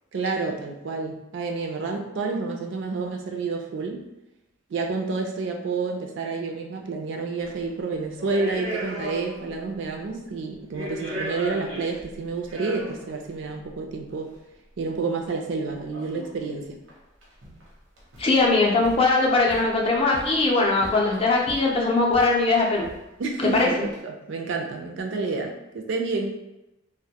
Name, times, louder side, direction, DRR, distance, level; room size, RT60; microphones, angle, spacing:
voice 1, 0.1-4.0 4.7-14.3 14.8-16.8 23.2-26.3, right 3 dB, 65° right, 2 dB, 0.4 m, -29 dB
sound 1, 7.4-7.6 8.2-9.6 9.8-9.9 10.5-13.2 14.1-14.2 15.9-16.4 16.9-17.0 17.2-17.7 18.0-18.4 18.8-19.0 19.5-20.4 20.8-21.7 22.1-22.3 22.6-23.0 23.5-23.9, right 1 dB, 90° right, 0.7 m, -37 dB
voice 2, 18.2-22.9 23.4-23.9, left 3 dB, 30° left, -2 dB, 0.4 m, -21 dB
2.1 x 2.0 x 2.8 m, 0.92 s
head